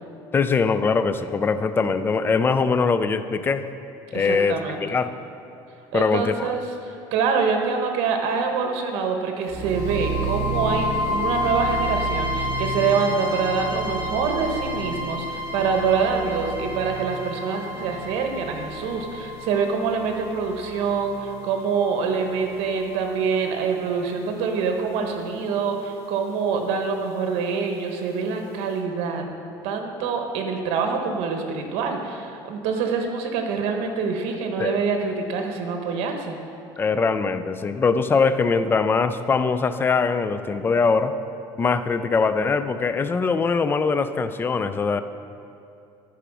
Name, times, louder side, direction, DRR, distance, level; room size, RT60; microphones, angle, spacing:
voice 1, 0.3-3.6 4.1-5.1 5.9-6.5 34.6-34.8 36.8-41.1 41.6-45.0, left 4 dB, 20° left, 11 dB, 0.4 m, -22 dB
voice 2, 4.1-4.8 5.9-29.2 29.6-36.4, right 5 dB, 70° right, 4 dB, 1.2 m, -25 dB
sound 1, 9.5-23.5, equal, 25° right, 2.2 m, -30 dB
10.0 x 4.9 x 6.1 m, 2.7 s
cardioid pair, 125°, 10 cm